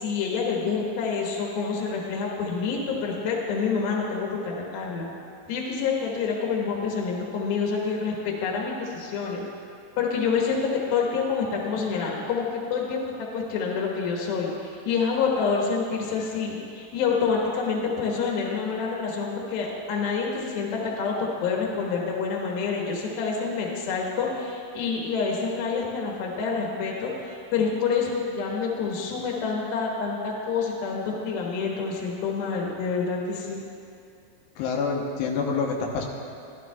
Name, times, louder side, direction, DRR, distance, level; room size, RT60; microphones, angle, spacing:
voice 1, 0.0-5.1 5.5-9.5 10.0-33.6, left 5 dB, 70° left, -2 dB, 3.0 m, -27 dB
voice 2, 34.6-36.1, left 5 dB, 90° left, 0 dB, 3.0 m, -27 dB
15.0 x 12.5 x 2.3 m, 2.5 s
omnidirectional pair, 4.9 m